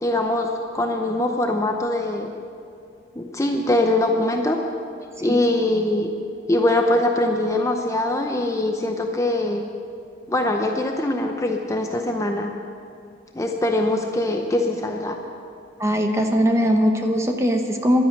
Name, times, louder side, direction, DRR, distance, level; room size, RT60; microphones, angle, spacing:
voice 1, 0.0-2.3 3.2-4.6 5.2-6.1 6.5-9.6 10.3-12.5 13.3-15.2, left 1 dB, 15° left, 3 dB, 0.7 m, -22 dB
voice 2, 15.8-18.1, equal, 15° right, 4 dB, 1.0 m, -20 dB
12.0 x 10.5 x 7.8 m, 2.4 s
head